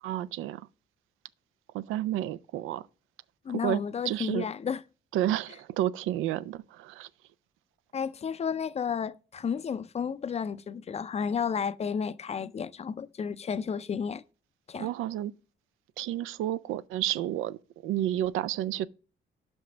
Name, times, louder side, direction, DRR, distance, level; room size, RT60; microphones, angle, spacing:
voice 1, 0.0-0.7 1.7-2.8 3.5-4.5 5.1-7.1 14.8-15.3 16.0-17.6 17.8-18.9, right 12 dB, 90° right, 0.4 m, -31 dB
voice 2, 3.5-4.8 7.9-14.2 14.7-14.9, left 6 dB, 35° left, 0.4 m, -32 dB
5.8 x 5.2 x 6.0 m
cardioid pair, 90°, 20 cm